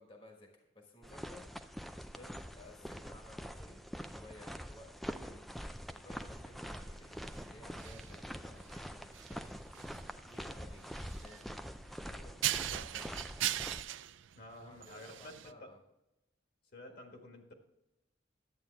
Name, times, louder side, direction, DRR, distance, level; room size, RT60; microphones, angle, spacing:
voice 1, 0.0-1.4 2.1-5.4 5.9-9.6 10.2-11.7 12.0-13.4 14.6-15.8 16.9-17.0, left 2 dB, 30° left, 1 dB, 1.4 m, -57 dB
sound 1, 1.0-13.8, equal, ahead, 0.3 m, -45 dB
sound 2, 6.1-15.5, right 13 dB, 80° right, 0.4 m, -41 dB
voice 2, 14.3-15.7 16.7-17.5, left 1 dB, 55° left, 3 dB, 1.6 m, -51 dB
11.0 x 8.7 x 3.3 m, 0.92 s
head